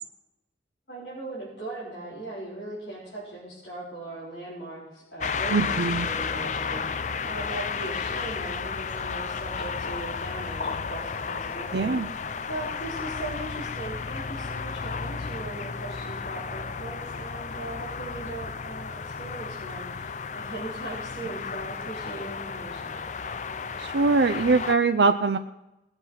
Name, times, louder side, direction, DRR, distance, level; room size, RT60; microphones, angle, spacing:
voice 1, 0.9-23.0, right 2 dB, 70° left, -9 dB, 4.5 m, -39 dB
sound 1, 5.2-24.7, left 5 dB, 40° left, 0.5 m, -33 dB
voice 2, 5.5-6.1 11.7-12.1 23.8-25.4, right 4 dB, 75° right, 7 dB, 0.5 m, -22 dB
19.5 x 8.0 x 5.7 m, 0.95 s
head